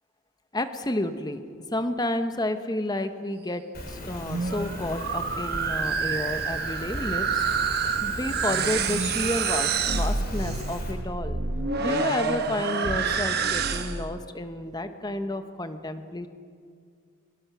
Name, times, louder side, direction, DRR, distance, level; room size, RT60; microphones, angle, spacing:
voice 1, 0.5-1.4 1.7-7.5 8.0-11.4 11.8-16.3, left 1 dB, 20° left, 9 dB, 1.0 m, -31 dB
Rain, 3.7-10.9, left 1 dB, 45° left, 4.0 m, -38 dB
sound 1, 4.1-14.1, right 5 dB, 45° right, 1.2 m, -28 dB
23.5 x 20.0 x 6.1 m, 2.2 s
head